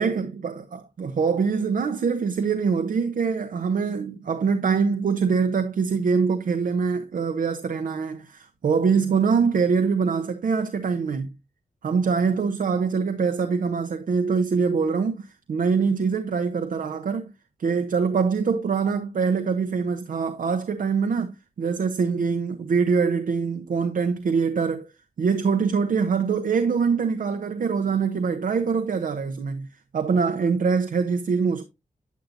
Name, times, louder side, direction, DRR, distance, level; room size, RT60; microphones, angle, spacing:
voice 1, 0.0-11.3 11.8-17.3 17.6-24.9 25.2-29.7 29.9-31.7, right 5 dB, 75° right, 0.8 m, -24 dB
9.2 x 8.4 x 2.6 m
wide cardioid pair, 110°, 14 cm